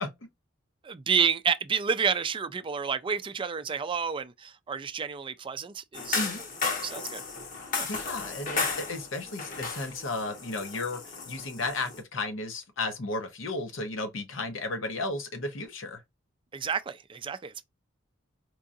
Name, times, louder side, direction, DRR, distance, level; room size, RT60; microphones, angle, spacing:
voice 1, 0.8-6.5 6.8-7.2 7.8-7.9 16.5-17.6, right 6 dB, 25° right, 0.3 m, -30 dB
sound 1, 5.9-12.0, left 4 dB, 45° left, 1.1 m, -34 dB
voice 2, 7.8-11.0 11.3-16.0, left 2 dB, 70° left, 0.9 m, -34 dB
4.6 x 2.4 x 2.6 m
head